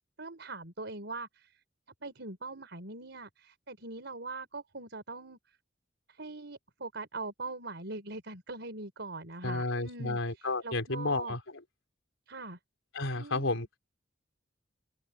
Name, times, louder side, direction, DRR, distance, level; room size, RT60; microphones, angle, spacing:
voice 1, 0.2-1.5 2.0-5.4 6.1-11.4 12.3-12.6 13.1-13.7, right 3 dB, 60° right, 5.4 m, -42 dB
voice 2, 9.4-11.4 12.9-13.8, left 2 dB, 90° left, 4.0 m, -32 dB
head